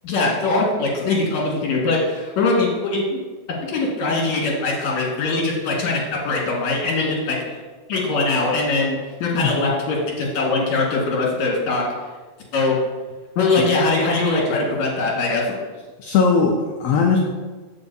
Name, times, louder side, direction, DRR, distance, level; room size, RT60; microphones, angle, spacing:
voice 1, 0.0-3.2 3.7-7.6 7.9-11.8 12.5-12.8 13.4-15.4, left 3 dB, 65° left, -3 dB, 3.0 m, -21 dB
voice 2, 16.0-17.2, left 5 dB, 90° left, 1 dB, 1.3 m, -19 dB
14.5 x 4.8 x 2.7 m, 1.3 s
omnidirectional pair, 3.6 m